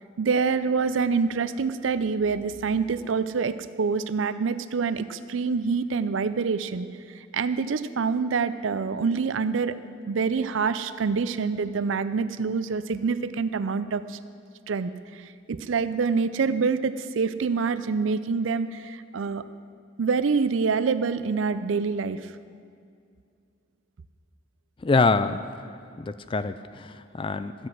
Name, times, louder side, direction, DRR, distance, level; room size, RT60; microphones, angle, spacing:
voice 1, 0.2-6.9 7.3-9.8 10.1-14.2 14.7-14.9 15.2-19.4 20.0-22.3, right 5 dB, 80° right, 13 dB, 0.5 m, -26 dB
voice 2, 24.8-25.4 26.0-27.7, left 3 dB, 25° left, 12 dB, 0.4 m, -25 dB
13.0 x 7.8 x 6.2 m, 2.3 s
head